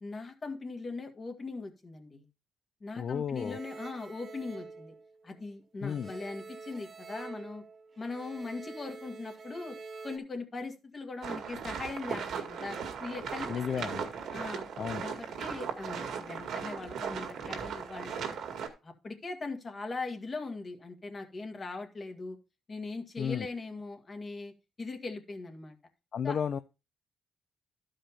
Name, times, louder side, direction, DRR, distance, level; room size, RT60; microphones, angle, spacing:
voice 1, 0.0-2.3 2.8-4.9 5.2-7.6 8.0-9.8 10.0-13.9 14.3-14.7 15.0-18.4 18.8-22.4 22.7-24.5 24.8-25.8 26.2-26.4, left 3 dB, 35° left, 5 dB, 1.9 m, -40 dB
voice 2, 3.0-3.6 5.8-6.1 13.5-14.1 14.8-15.0 23.2-23.5 26.1-26.6, left 7 dB, 55° left, 11 dB, 0.5 m, -33 dB
sound 1, 3.3-5.5 5.8-10.2, right 4 dB, 40° right, 1.2 m, -47 dB
sound 2, 11.2-18.7, right 7 dB, 70° right, 2.0 m, -37 dB
12.5 x 5.0 x 4.2 m, 0.28 s
cardioid pair, 90°, 0 cm